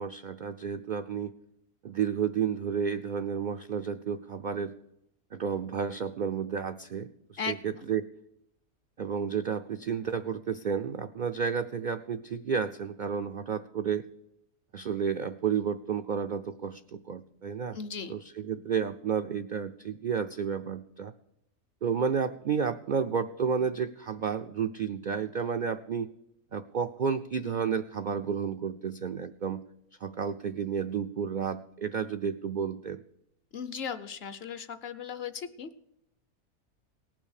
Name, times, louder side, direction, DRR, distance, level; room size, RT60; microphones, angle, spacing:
voice 1, 0.0-1.3 1.8-4.8 5.3-8.1 9.0-14.0 14.7-17.8 18.1-21.1 21.8-26.1 26.5-29.7 30.0-33.0, right 6 dB, 75° right, 8 dB, 0.4 m, -31 dB
voice 2, 7.4-7.9 17.7-18.1 33.5-35.7, left 6 dB, 55° left, 12 dB, 0.8 m, -37 dB
18.5 x 6.1 x 6.5 m, 0.81 s
omnidirectional pair, 1.5 m